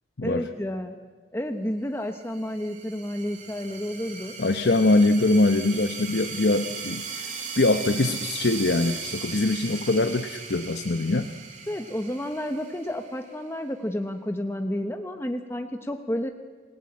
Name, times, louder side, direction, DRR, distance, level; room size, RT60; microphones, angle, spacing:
voice 1, 0.2-1.0 1.3-4.3 11.7-16.3, left 1 dB, 15° left, 5 dB, 1.1 m, -31 dB
sound 1, 2.2-13.4, right 5 dB, 45° right, 3.4 m, -38 dB
voice 2, 4.4-11.3, left 2 dB, 75° left, 8 dB, 0.9 m, -23 dB
28.0 x 20.0 x 8.7 m, 1.4 s
head